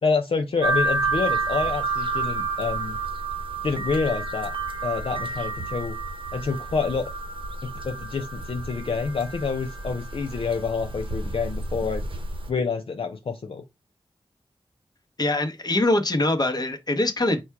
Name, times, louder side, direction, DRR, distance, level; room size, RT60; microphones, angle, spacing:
voice 1, 0.0-3.0 3.6-4.5 4.8-6.0 6.3-7.1 7.6-12.0 12.5-13.6, left 5 dB, 65° left, 0.6 m, -27 dB
sound 1, 0.6-12.5, right 3 dB, 60° right, 0.9 m, -30 dB
voice 2, 15.2-17.4, left 2 dB, 40° left, 1.0 m, -23 dB
4.3 x 2.3 x 4.5 m
cardioid pair, 50°, 10 cm